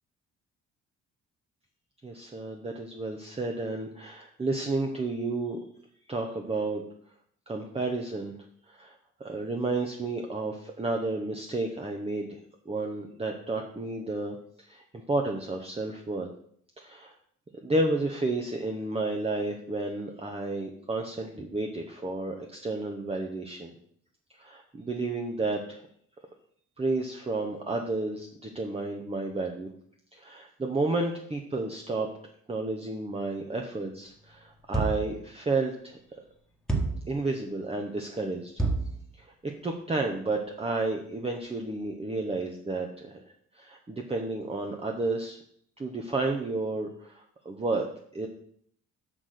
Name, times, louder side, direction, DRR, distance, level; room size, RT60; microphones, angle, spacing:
voice 1, 2.0-5.6 6.1-6.8 7.5-8.3 8.7-12.4 12.7-16.3 16.8-17.1 17.6-23.8 24.3-25.9 26.8-29.7 30.1-32.1 32.5-36.0 37.1-38.5 39.1-45.4 45.8-47.9 48.1-48.3, right 2 dB, 20° right, 2 dB, 1.0 m, -31 dB
sound 1, 34.7-35.2 36.7-37.1 38.6-39.0, right 3 dB, ahead, 1.6 m, -28 dB
6.2 x 6.1 x 6.5 m, 0.64 s
cardioid pair, 90°, 30 cm